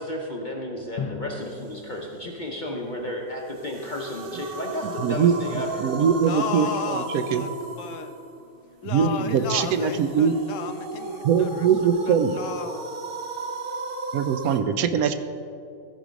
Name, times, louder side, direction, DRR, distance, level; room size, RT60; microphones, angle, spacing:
voice 1, 0.0-6.2, left 1 dB, 40° left, 0.8 m, -33 dB
Drum, 1.0-3.6, left 5 dB, 85° left, 1.3 m, -39 dB
sound 1, 3.5-14.6, right 4 dB, 50° right, 0.7 m, -36 dB
voice 2, 5.0-7.5 8.8-10.3 11.2-12.4 14.1-15.1, right 7 dB, 75° right, 1.0 m, -22 dB
voice 3, 6.2-7.5 7.8-8.1 8.8-12.9, left 8 dB, 65° left, 0.8 m, -34 dB
14.5 x 4.9 x 5.1 m
omnidirectional pair, 1.6 m